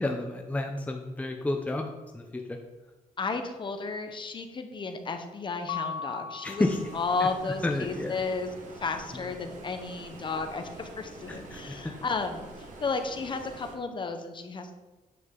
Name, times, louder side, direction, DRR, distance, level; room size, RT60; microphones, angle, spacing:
voice 1, 0.0-2.6 6.4-6.9 7.4-8.2 11.3-11.9, left 2 dB, 10° left, 3 dB, 0.7 m, -31 dB
voice 2, 3.2-6.6 6.9-8.5 8.7-14.7, left 4 dB, 35° left, 7 dB, 1.0 m, -33 dB
Mallet percussion, 5.7-7.5, left 6 dB, 90° left, 0.6 m, -38 dB
Stream, 6.6-13.8, right 2 dB, 60° right, 2.0 m, -46 dB
9.4 x 7.9 x 3.9 m, 1.2 s
cardioid pair, 135°, 15 cm